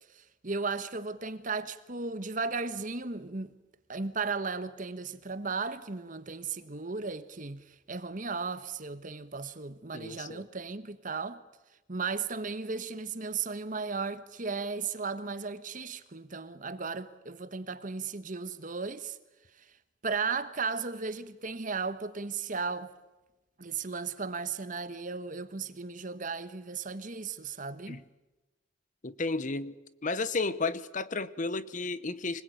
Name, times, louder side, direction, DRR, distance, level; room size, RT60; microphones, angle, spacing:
voice 1, 0.1-3.5 3.9-11.4 11.9-19.2 19.6-19.8 20.0-22.9 23.6-28.0, right 4 dB, 40° right, 1.3 m, -35 dB
voice 2, 9.9-10.4 27.9-28.0 29.0-29.7 30.0-32.4, left 3 dB, 40° left, 0.9 m, -32 dB
25.5 x 20.0 x 9.4 m
head